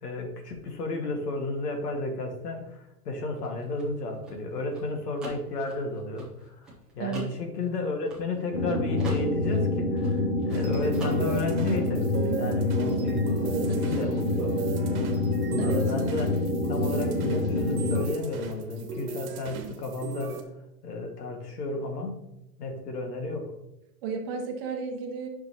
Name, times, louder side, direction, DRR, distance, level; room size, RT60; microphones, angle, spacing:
voice 1, 0.0-6.5 6.9-14.6 15.4-16.4 16.7-20.4 20.8-22.2 22.6-23.5, left 2 dB, 85° left, 3 dB, 2.0 m, -32 dB
sound 1, 3.4-8.7 9.0-10.6 10.9-11.6, right 2 dB, ahead, 0.5 m, -42 dB
voice 2, 7.0-7.3 15.6-15.9 24.0-25.3, right 5 dB, 35° right, 3 dB, 1.2 m, -32 dB
sound 2, 8.5-18.0, left 2 dB, 65° left, 2.6 m, -27 dB
sound 3, 10.5-20.4, right 6 dB, 65° right, 1.5 m, -38 dB
8.6 x 6.1 x 2.9 m, 0.86 s
supercardioid pair, 160°, 47 cm